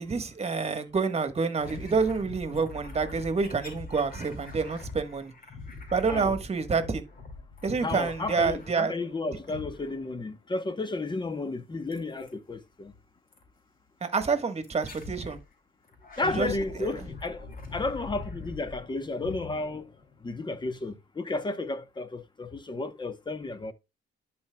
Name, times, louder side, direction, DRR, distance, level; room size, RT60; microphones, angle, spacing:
voice 1, 0.0-5.3 5.9-7.0 7.6-8.9 14.0-15.4 16.2-16.9, right 5 dB, 30° right, 1.4 m, -28 dB
sound 1, 1.6-9.0 9.4-10.2 11.9-12.3 13.3-13.5 14.6-15.4 15.9-20.2, left 3 dB, 45° left, 2.5 m, -43 dB
voice 2, 7.8-12.9 16.2-19.9 20.2-23.7, left 2 dB, 25° left, 1.0 m, -33 dB
11.5 x 4.4 x 2.3 m
cardioid pair, 90°, 20 cm